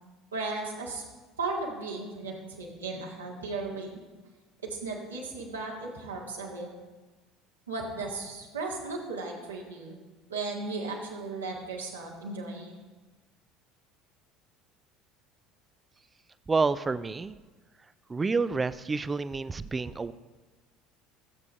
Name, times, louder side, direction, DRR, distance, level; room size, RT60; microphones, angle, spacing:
voice 1, 0.3-1.0 1.4-3.9 4.6-6.7 7.7-9.9 10.3-12.7, right 3 dB, 80° right, -3 dB, 1.9 m, -36 dB
voice 2, 16.5-17.4 18.1-20.1, right 4 dB, 20° right, 16 dB, 0.4 m, -28 dB
17.0 x 8.2 x 2.6 m, 1.3 s
figure-of-eight pair, 65°, 0 cm